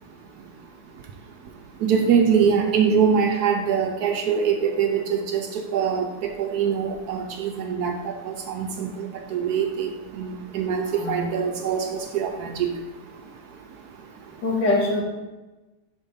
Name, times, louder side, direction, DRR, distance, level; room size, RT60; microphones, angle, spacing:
voice 1, 1.8-8.0 8.3-9.9 10.2-12.7, right 7 dB, 70° right, 4 dB, 1.0 m, -23 dB
voice 2, 10.9-11.2 14.4-15.0, left 2 dB, 75° left, -1 dB, 1.9 m, -23 dB
5.4 x 4.3 x 5.4 m, 1.1 s
omnidirectional pair, 2.0 m